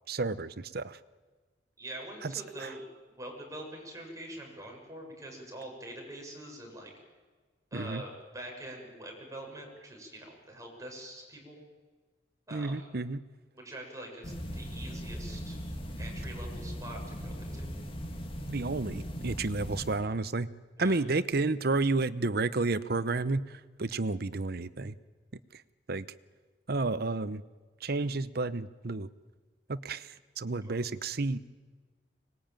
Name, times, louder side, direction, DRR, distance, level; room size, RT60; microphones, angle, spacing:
voice 1, 0.1-1.0 2.2-2.7 7.7-8.0 12.5-13.2 18.5-20.5 20.8-24.9 25.5-25.6 25.9-26.1 26.7-27.4 27.8-29.1 29.7-31.4, right 3 dB, 60° right, 15 dB, 0.9 m, -31 dB
voice 2, 1.8-2.8 3.2-6.9 7.7-11.6 12.5-12.9 13.5-15.6 16.0-17.7 20.8-21.0 30.6-30.8, right 1 dB, 20° right, 1 dB, 6.7 m, -44 dB
sound 1, 14.2-20.0, equal, 30° left, 2.4 m, -39 dB
25.0 x 20.5 x 9.0 m, 1.4 s
head